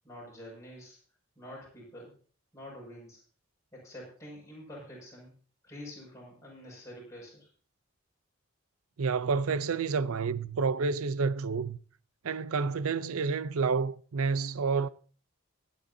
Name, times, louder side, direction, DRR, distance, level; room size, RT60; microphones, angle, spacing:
voice 1, 0.0-1.0 1.4-2.1 2.5-3.2 3.7-5.3 5.6-7.5, equal, 15° left, 6.1 m, -47 dB
voice 2, 9.0-11.8 12.2-14.9, right 5 dB, 80° right, 0.5 m, -29 dB
21.5 x 9.1 x 2.7 m
head